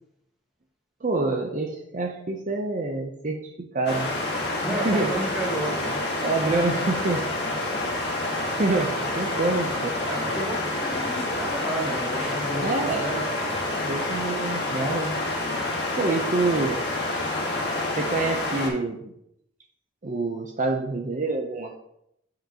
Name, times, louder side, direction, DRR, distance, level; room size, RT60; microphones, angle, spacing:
voice 1, 1.0-4.1 4.7-5.1 5.7-7.2 8.4-10.0 12.6-13.1 13.8-15.2 16.0-16.8 17.9-19.1 20.0-21.8, right 3 dB, 45° right, 2 dB, 0.6 m, -27 dB
sound 1, 3.9-18.7, left 2 dB, 65° left, 1.7 m, -28 dB
voice 2, 4.6-6.0 10.0-13.3, right 1 dB, ahead, -6 dB, 1.8 m, -32 dB
7.5 x 5.9 x 2.9 m, 0.78 s
head